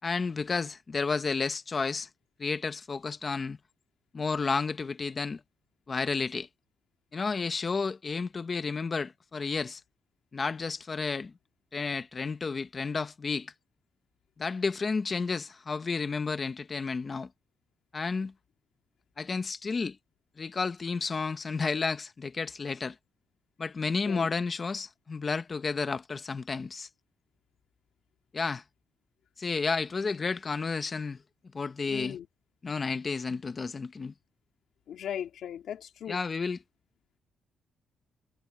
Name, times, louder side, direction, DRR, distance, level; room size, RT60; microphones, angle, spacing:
voice 1, 0.0-2.1 2.4-3.6 4.1-5.4 5.9-6.5 7.1-9.8 10.3-11.3 11.7-13.5 14.4-17.3 17.9-18.3 19.2-20.0 20.4-23.0 23.6-26.9 28.3-28.6 29.4-31.2 31.5-32.2 32.6-34.1 36.1-36.6, left 4 dB, 30° left, 0.9 m, -31 dB
voice 2, 31.9-32.3 34.9-36.2, left 9 dB, 75° left, 2.5 m, -38 dB
cardioid pair, 125°, 0 cm